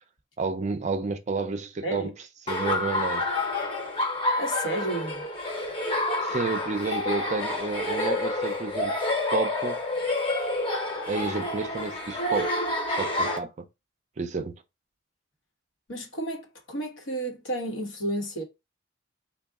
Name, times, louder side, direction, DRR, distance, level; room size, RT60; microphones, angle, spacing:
voice 1, 0.4-2.1 2.5-3.3 6.2-8.9 9.3-9.8 11.1-12.5 13.0-13.7 14.2-14.6, right 4 dB, 35° right, 0.4 m, -30 dB
Laughter, 2.5-13.4, left 2 dB, 25° left, 0.8 m, -28 dB
voice 2, 4.4-5.2 11.2-11.3 15.9-18.4, right 1 dB, 80° left, 1.1 m, -32 dB
3.7 x 2.3 x 3.5 m
head